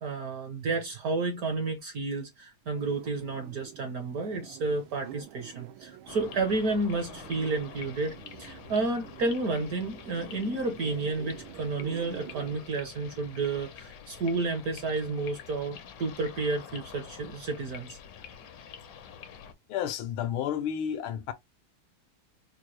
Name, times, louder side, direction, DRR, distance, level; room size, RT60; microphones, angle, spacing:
voice 1, 0.0-18.0, right 3 dB, 60° right, 1.0 m, -31 dB
sound 1, 2.7-12.7, right 12 dB, 80° right, 1.4 m, -47 dB
sound 2, 6.0-19.5, left 7 dB, 70° left, 1.2 m, -47 dB
voice 2, 19.7-21.3, left 9 dB, 85° left, 1.6 m, -31 dB
4.7 x 2.1 x 3.1 m
omnidirectional pair, 2.2 m